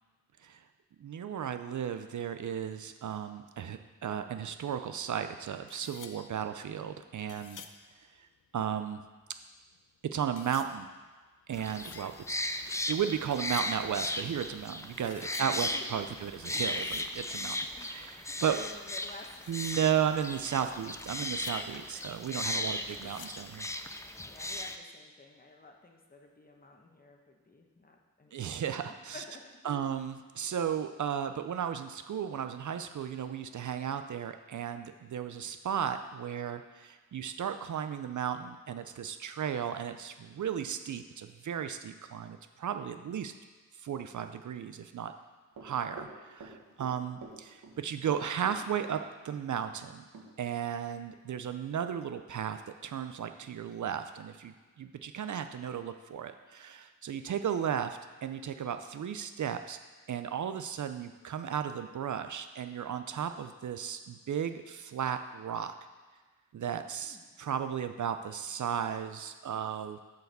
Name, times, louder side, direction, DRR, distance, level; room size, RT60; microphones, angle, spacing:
voice 1, 1.0-7.7 8.5-9.0 10.1-10.9 11.5-12.4 12.9-18.6 19.5-23.7 28.3-29.2 29.6-43.3 43.8-45.1 45.6-50.0 50.4-59.8 60.1-65.7 66.5-70.0, right 8 dB, 60° right, 9 dB, 0.5 m, -35 dB
sound 1, 5.7-8.8 9.2-9.8 10.3-12.9 13.2-14.0 14.3-16.0 16.3-18.3 18.5-18.7 18.9-19.1 19.3-22.6 22.9-24.4, left 8 dB, 65° left, 0.5 m, -52 dB
sound 2, 11.5-24.8, left 1 dB, 10° left, 0.4 m, -37 dB
voice 2, 15.4-16.3 17.8-17.9 18.2-20.1 20.6-21.0 21.7-22.1 22.5-23.1 24.3-29.9 67.0-67.3, left 2 dB, 25° left, 2 dB, 1.0 m, -52 dB
Run, 45.6-46.9 47.2-47.8 48.1-49.4 49.7-49.8 50.1-50.3, right 3 dB, 80° right, 1.4 m, -47 dB
7.8 x 4.7 x 6.8 m, 1.3 s
wide cardioid pair, 105°, 34 cm